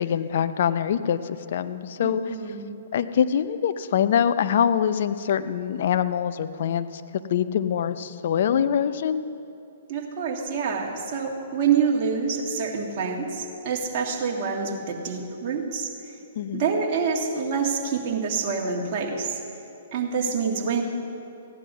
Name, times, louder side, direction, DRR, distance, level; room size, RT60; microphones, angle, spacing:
voice 1, 0.0-2.5 2.9-7.0 7.3-9.3 16.4-16.7, left 8 dB, 60° left, 12 dB, 0.6 m, -24 dB
voice 2, 2.0-2.8 9.9-15.9 16.5-19.4 19.9-20.8, right 5 dB, 40° right, -1 dB, 2.0 m, -26 dB
15.0 x 11.0 x 5.5 m, 2.7 s
hypercardioid pair, 125°, 0 cm